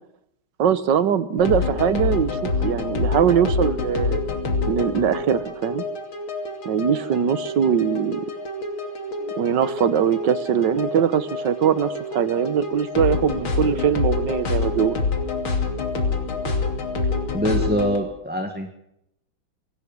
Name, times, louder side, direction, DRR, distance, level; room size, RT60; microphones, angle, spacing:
voice 1, 0.6-4.2 4.7-5.8 6.7-8.3 9.2-15.0, right 8 dB, 65° right, 14 dB, 1.8 m, -21 dB
sound 1, 1.4-18.0, left 3 dB, 85° left, 3.6 m, -27 dB
voice 2, 17.3-18.7, equal, 5° right, 3 dB, 1.8 m, -24 dB
24.5 x 17.0 x 9.1 m, 0.80 s
omnidirectional pair, 2.2 m